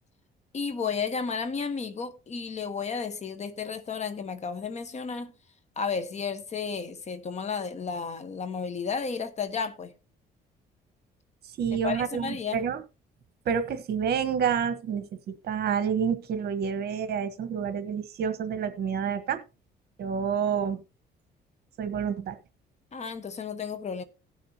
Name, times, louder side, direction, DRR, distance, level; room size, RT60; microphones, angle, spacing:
voice 1, 0.5-5.3 5.8-9.9 11.8-12.6 22.9-24.0, left 5 dB, 40° left, 1.3 m, -32 dB
voice 2, 11.6-12.8 13.4-19.4 20.0-20.8 21.8-22.4, right 7 dB, 60° right, 1.3 m, -28 dB
17.5 x 6.5 x 2.9 m
cardioid pair, 125°, 18 cm